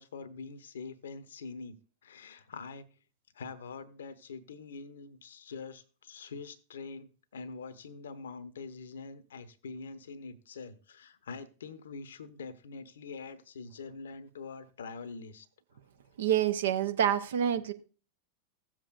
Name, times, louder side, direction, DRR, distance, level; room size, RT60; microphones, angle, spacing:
voice 1, 0.0-1.8 2.0-2.9 3.3-15.5, left 4 dB, 65° left, 0.8 m, -44 dB
voice 2, 16.2-17.7, right 9 dB, 60° right, 0.7 m, -27 dB
16.0 x 7.5 x 2.4 m
figure-of-eight pair, 90°, 0 cm